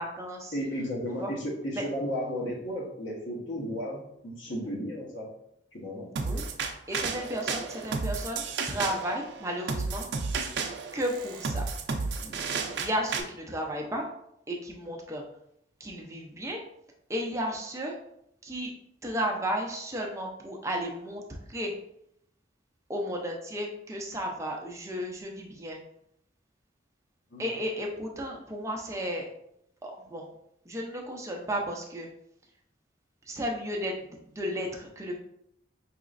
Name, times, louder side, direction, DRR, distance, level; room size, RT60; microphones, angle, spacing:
voice 1, 0.0-0.6 1.2-1.3 1.7-1.8 6.2-10.1 10.9-11.7 12.8-14.1 14.5-15.2 15.8-16.6 17.1-17.9 18.4-18.7 19.0-21.2 21.5-21.7 22.9-25.8 27.4-29.3 29.8-30.3 30.7-32.1 33.3-35.2, equal, 15° right, 0 dB, 0.5 m, -33 dB
voice 2, 0.5-4.0 4.2-5.3 5.7-6.1 12.2-12.5 27.3-27.4, equal, 85° left, -3 dB, 1.2 m, -34 dB
sound 1, 6.2-13.2, right 4 dB, 70° right, 0.4 m, -32 dB
4.8 x 3.0 x 2.5 m, 0.75 s
head